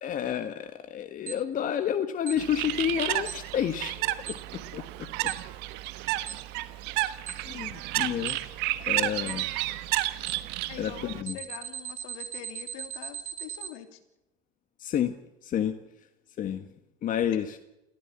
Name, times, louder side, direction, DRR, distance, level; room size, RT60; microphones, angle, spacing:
voice 1, 0.0-4.1 4.7-5.3 7.3-8.4 8.9-9.4 10.8-11.4 14.8-15.1 15.4-15.7 16.4-16.7 17.0-17.6, left 9 dB, 45° left, 9 dB, 1.6 m, -30 dB
Alarm, 1.3-1.4 2.3-2.4 3.3-3.4 4.3-4.4 5.3-5.4 6.3-6.4 7.3-7.4 8.3-8.4 9.3-9.4 10.3-10.4 11.3-13.7, right 9 dB, 40° right, 3.5 m, -37 dB
Bird, 2.4-11.2, right 17 dB, 65° right, 1.4 m, -31 dB
voice 2, 10.7-14.0 17.3-17.4, left 10 dB, 70° left, 8 dB, 2.9 m, -44 dB
28.5 x 15.0 x 7.4 m, 0.94 s
hypercardioid pair, 75°, 19 cm